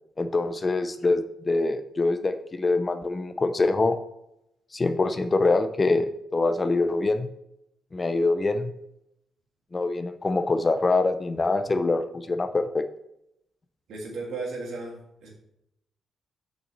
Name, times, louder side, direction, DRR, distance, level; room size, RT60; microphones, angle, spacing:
voice 1, 0.2-4.0 4.7-7.3 7.9-8.7 9.7-12.8, left 3 dB, 20° left, 9 dB, 0.5 m, -24 dB
voice 2, 13.9-15.3, right 3 dB, 60° right, -1 dB, 3.0 m, -35 dB
6.4 x 6.1 x 7.0 m, 0.83 s
cardioid pair, 170°, 0 cm